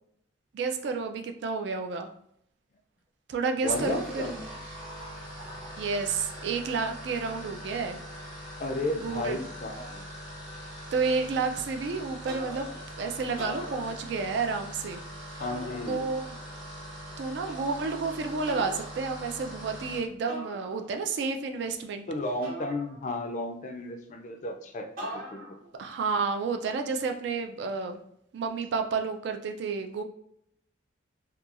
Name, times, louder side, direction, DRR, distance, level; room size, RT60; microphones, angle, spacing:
voice 1, 0.5-2.1 3.3-4.3 5.8-8.0 9.0-9.4 10.9-12.7 13.0-15.0 15.9-16.3 17.2-22.1 25.8-28.0 28.3-30.0, right 4 dB, 60° right, 5 dB, 0.3 m, -30 dB
sound 1, 3.5-20.1, equal, 5° right, 0.6 m, -42 dB
voice 2, 3.6-4.4 8.6-10.1 15.4-16.0 22.1-25.6, left 2 dB, 40° left, 4 dB, 0.3 m, -33 dB
sound 2, 12.3-12.9 13.3-14.4 15.4-16.3 17.5-18.0 18.5-19.0 20.3-21.1 22.4-23.4 25.0-25.7, equal, 45° right, 1.0 m, -41 dB
2.8 x 2.2 x 2.4 m, 0.70 s
head